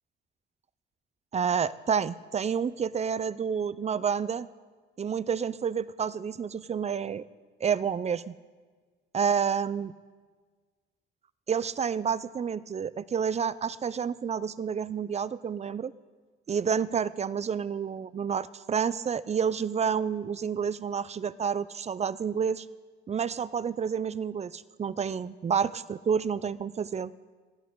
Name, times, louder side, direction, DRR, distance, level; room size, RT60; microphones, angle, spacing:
voice 1, 1.3-4.5 5.0-7.2 7.6-8.3 9.1-9.9 11.5-15.9 16.5-22.7 23.1-27.1, right 7 dB, 35° right, 17 dB, 0.5 m, -29 dB
19.5 x 14.5 x 3.9 m, 1.5 s
cardioid pair, 90°, 20 cm